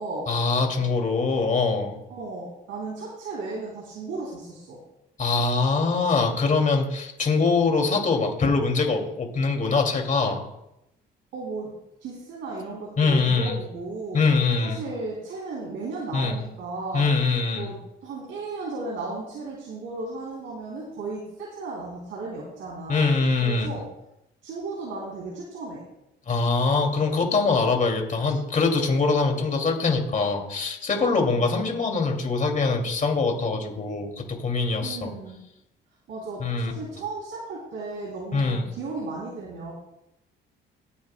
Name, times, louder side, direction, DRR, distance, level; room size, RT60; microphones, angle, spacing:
voice 1, 0.3-2.0 5.2-10.4 13.0-13.6 14.1-14.8 16.1-16.4 16.9-17.7 22.9-23.7 26.3-35.1 36.4-36.7 38.3-38.6, left 4 dB, 40° left, 2 dB, 2.5 m, -23 dB
voice 2, 2.1-4.8 11.3-11.7 12.0-14.2 14.6-17.1 17.5-17.8 18.0-23.9 24.4-25.8 31.3-31.8 34.8-35.4 36.1-39.7, right 3 dB, 80° right, -5 dB, 3.1 m, -35 dB
18.5 x 9.8 x 2.2 m, 0.85 s
cardioid pair, 90°, 20 cm